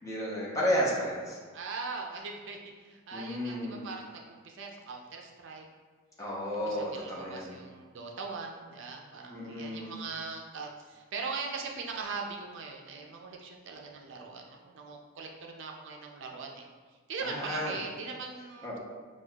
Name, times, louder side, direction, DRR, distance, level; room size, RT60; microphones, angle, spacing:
voice 1, 0.0-1.4 3.1-3.8 6.2-7.5 9.3-9.9 17.2-17.8 18.6-18.8, equal, 15° left, -5 dB, 0.8 m, -32 dB
voice 2, 1.5-5.6 6.6-16.7 17.1-18.8, right 4 dB, 60° right, 1 dB, 0.4 m, -40 dB
6.0 x 2.3 x 2.3 m, 1.5 s
head